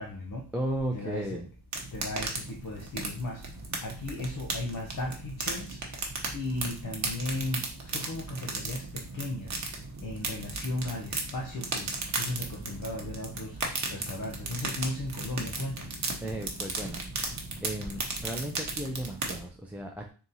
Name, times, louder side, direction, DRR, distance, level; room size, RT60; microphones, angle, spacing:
voice 1, 0.0-0.4 0.9-1.4 1.9-3.4 3.8-5.8 6.3-9.5 10.0-11.9 12.1-13.6 13.9-15.9 16.8-16.9, left 2 dB, 50° left, 0 dB, 0.7 m, -36 dB
voice 2, 0.5-1.5 16.2-17.0 17.6-20.1, right 1 dB, 5° right, 0 dB, 0.3 m, -35 dB
sound 1, 1.7-19.4, right 3 dB, 40° right, 0.9 m, -36 dB
3.7 x 2.9 x 3.9 m, 0.36 s
wide cardioid pair, 155°, 43 cm